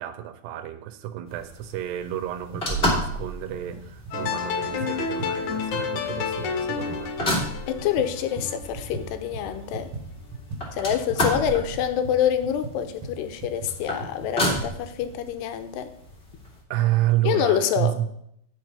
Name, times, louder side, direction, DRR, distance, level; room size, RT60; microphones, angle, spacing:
voice 1, 0.0-7.1 16.7-18.3, right 13 dB, 80° right, 10 dB, 2.8 m, -29 dB
sound 1, 1.3-16.6, left 1 dB, 20° left, 1.7 m, -32 dB
sound 2, 3.5-3.8 4.0-9.1 9.3-14.7, right 3 dB, 50° right, 1.8 m, -38 dB
sound 3, 4.1-9.2, left 6 dB, 60° left, 2.2 m, -30 dB
voice 2, 7.7-9.9 10.7-15.9 17.2-18.0, left 9 dB, 80° left, 10 dB, 2.8 m, -26 dB
10.0 x 7.6 x 5.2 m, 0.73 s
omnidirectional pair, 4.9 m